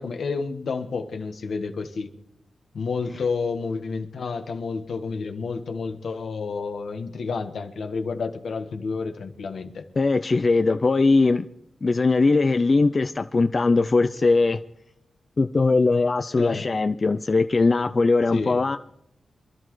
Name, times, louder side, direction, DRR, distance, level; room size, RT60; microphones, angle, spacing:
voice 1, 0.0-2.1 2.7-9.9 16.4-16.7 18.3-18.6, left 4 dB, 75° left, 6 dB, 1.4 m, -30 dB
voice 2, 10.0-11.5 11.8-14.6 15.4-18.8, left 3 dB, 45° left, 10 dB, 0.5 m, -20 dB
26.5 x 12.0 x 3.2 m, 0.77 s
cardioid pair, 65°, 0 cm